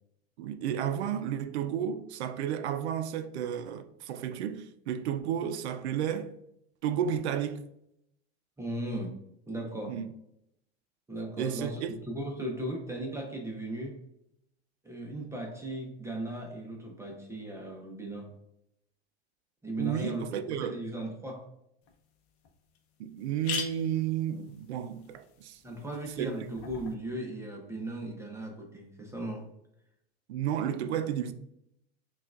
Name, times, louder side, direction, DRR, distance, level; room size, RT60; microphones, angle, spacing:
voice 1, 0.4-6.3 6.8-7.6 9.9-10.1 11.4-12.0 19.8-20.8 23.0-25.6 26.2-26.3 30.3-31.3, right 9 dB, 80° right, 0.5 m, -32 dB
voice 2, 8.6-9.2 9.5-10.0 11.1-14.0 14.8-18.3 19.6-21.4 25.6-29.5, right 1 dB, 10° right, 0.6 m, -37 dB
sound 1, 21.9-22.0 22.4-22.5 22.7-22.8 23.2-26.9, left 6 dB, 45° left, 0.7 m, -42 dB
5.6 x 2.4 x 2.4 m
hypercardioid pair, 105°, 33 cm